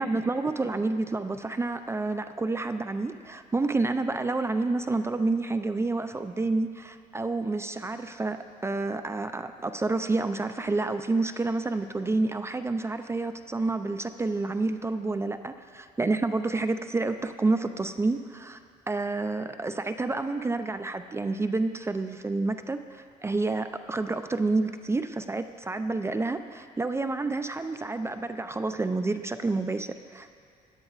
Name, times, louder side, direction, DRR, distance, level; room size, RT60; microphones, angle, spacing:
voice 1, 0.0-18.6 18.9-30.3, right 3 dB, 15° right, 9 dB, 0.3 m, -29 dB
17.0 x 10.5 x 2.4 m, 2.2 s
cardioid pair, 110°, 17 cm